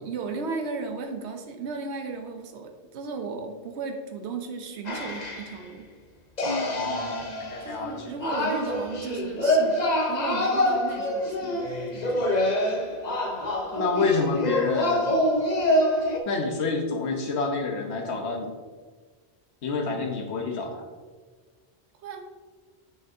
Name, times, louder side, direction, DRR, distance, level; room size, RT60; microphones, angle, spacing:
voice 1, 0.0-5.9 7.6-12.3 22.0-22.3, right 4 dB, 80° right, 5 dB, 1.0 m, -35 dB
sound 1, 4.9-5.6 6.4-16.2, left 1 dB, 45° left, 0.8 m, -26 dB
voice 2, 6.4-8.1 13.7-15.2 16.3-18.5 19.6-20.8, left 3 dB, 75° left, 2 dB, 1.2 m, -28 dB
7.7 x 6.7 x 2.7 m, 1.4 s
omnidirectional pair, 1.1 m